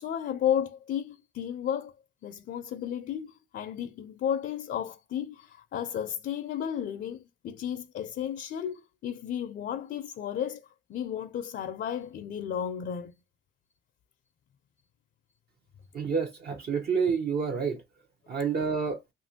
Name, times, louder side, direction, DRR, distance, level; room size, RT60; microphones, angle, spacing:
voice 1, 0.0-1.9 2.2-13.1, left 9 dB, 55° left, 0.5 m, -33 dB
voice 2, 15.9-17.8 18.3-19.0, right 5 dB, 55° right, 0.7 m, -28 dB
2.8 x 2.5 x 2.7 m
cardioid pair, 90°, 20 cm